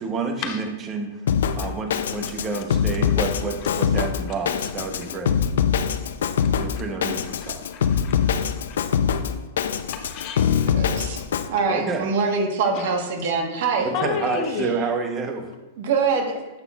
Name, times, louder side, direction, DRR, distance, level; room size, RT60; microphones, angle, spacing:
voice 1, 0.0-1.2 1.5-5.4 6.6-7.6 11.7-12.0 13.8-15.5, right 4 dB, 25° right, 5 dB, 0.9 m, -29 dB
Drum kit, 1.3-11.5, left 7 dB, 80° left, 0.4 m, -23 dB
voice 2, 3.9-4.4 4.8-4.9 6.4-8.8 9.9-10.7 12.7-12.9 13.9-14.7, left 6 dB, 40° left, 5 dB, 0.8 m, -34 dB
voice 3, 10.7-11.2 11.5-13.9 15.8-16.4, right 4 dB, 60° right, 3 dB, 1.2 m, -24 dB
8.0 x 5.8 x 2.4 m, 1.1 s
hypercardioid pair, 145°, 0 cm